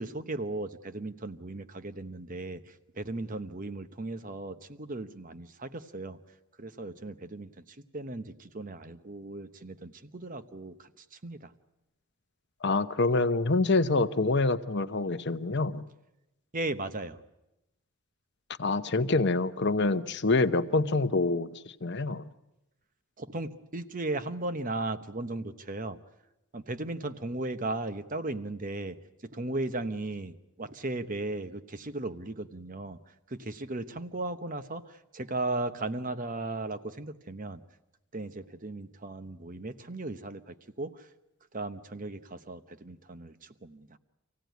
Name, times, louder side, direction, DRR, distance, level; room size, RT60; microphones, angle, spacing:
voice 1, 0.0-2.6 3.0-6.2 6.6-7.5 7.9-11.5 16.5-17.2 23.2-26.0 26.5-29.0 29.2-33.0 33.3-37.6 38.1-41.0 41.5-44.0, right 2 dB, 35° right, 11 dB, 1.0 m, -36 dB
voice 2, 12.6-15.8 18.6-21.5 21.8-22.3, left 3 dB, 50° left, 10 dB, 0.9 m, -26 dB
26.0 x 16.5 x 9.3 m, 0.93 s
head